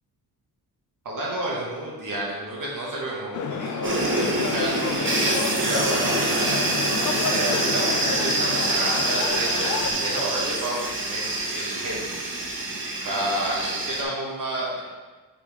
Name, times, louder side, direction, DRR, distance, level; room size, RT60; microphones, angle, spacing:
voice 1, 1.1-7.0 7.3-12.3 13.1-14.8, right 1 dB, 55° right, -4 dB, 1.9 m, -30 dB
sound 1, 3.3-9.9, left 6 dB, 50° left, 0.6 m, -30 dB
sound 2, 3.8-14.0, right 2 dB, 30° right, 1.1 m, -26 dB
7.7 x 4.8 x 3.6 m, 1.3 s
cardioid pair, 125°, 39 cm